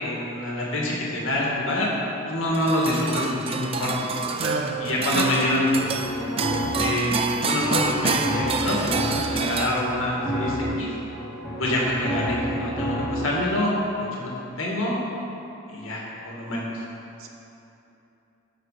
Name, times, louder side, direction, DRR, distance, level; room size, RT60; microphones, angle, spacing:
voice 1, 0.0-4.1 4.8-9.0 9.3-10.9 11.6-14.3 14.6-15.0 15.7-16.7, left 1 dB, 70° left, -4 dB, 1.9 m, -26 dB
sound 1, 2.5-10.2, right 4 dB, 25° right, 0.3 m, -28 dB
voice 2, 4.4-4.8 5.1-5.3 17.2-17.3, right 3 dB, 75° right, 2 dB, 0.9 m, -29 dB
sound 2, 5.6-13.3, equal, ahead, 2.3 m, -30 dB
12.5 x 4.7 x 5.0 m, 2.9 s
head